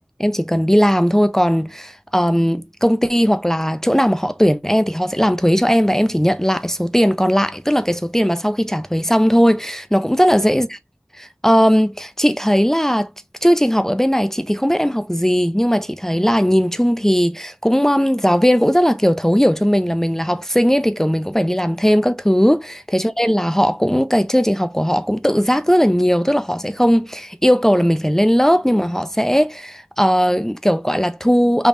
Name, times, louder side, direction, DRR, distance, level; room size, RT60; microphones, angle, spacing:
voice 1, 0.2-10.8 11.2-13.1 13.4-31.7, equal, 10° left, 0.3 m, -17 dB
3.3 x 3.1 x 2.5 m
wide cardioid pair, 45°, 5 cm